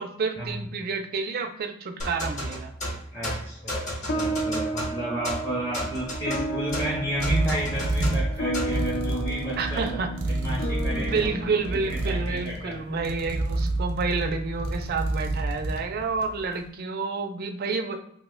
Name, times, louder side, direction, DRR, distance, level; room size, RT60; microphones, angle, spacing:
voice 1, 0.0-2.7 9.6-10.4 10.9-18.0, right 4 dB, 45° right, 6 dB, 0.4 m, -29 dB
sound 1, 2.0-8.8, equal, 35° left, 0.8 m, -33 dB
voice 2, 3.1-9.9 10.3-11.3 11.7-12.8, right 1 dB, 10° left, -6 dB, 0.6 m, -32 dB
sound 2, 4.1-12.8, right 1 dB, 60° left, 0.4 m, -33 dB
sound 3, 5.9-16.5, right 2 dB, 85° right, 0.7 m, -29 dB
2.7 x 2.1 x 3.7 m, 0.71 s
head